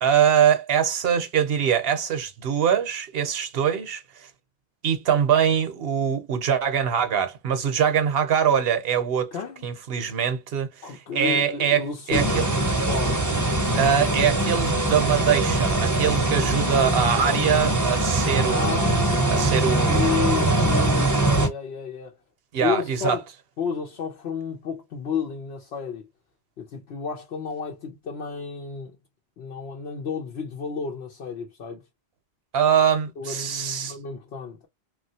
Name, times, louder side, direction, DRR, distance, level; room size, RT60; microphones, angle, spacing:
voice 1, 0.0-4.3 4.8-9.3 9.6-12.4 13.8-18.8 19.3-20.1 22.5-23.2 32.5-34.0, right 8 dB, 70° right, 0.9 m, -23 dB
voice 2, 9.3-9.6 10.8-12.5 12.9-13.2 18.4-22.2 22.6-23.2 23.6-26.0 26.6-29.0 29.4-31.8 33.2-34.7, left 6 dB, 75° left, 0.9 m, -31 dB
sound 1, 12.1-21.5, right 2 dB, 20° right, 0.6 m, -22 dB
3.0 x 2.4 x 2.7 m
omnidirectional pair, 1.1 m